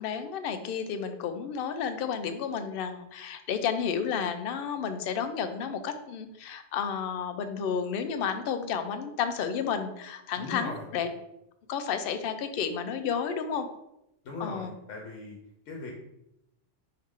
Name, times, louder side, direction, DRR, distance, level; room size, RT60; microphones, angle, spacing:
voice 1, 0.0-11.1 11.7-13.7 14.4-14.7, left 7 dB, 60° left, 8 dB, 0.6 m, -31 dB
voice 2, 10.4-10.8 14.2-15.4 15.7-15.9, left 3 dB, 80° left, 0 dB, 1.1 m, -38 dB
4.6 x 3.1 x 3.6 m, 0.84 s
omnidirectional pair, 1.3 m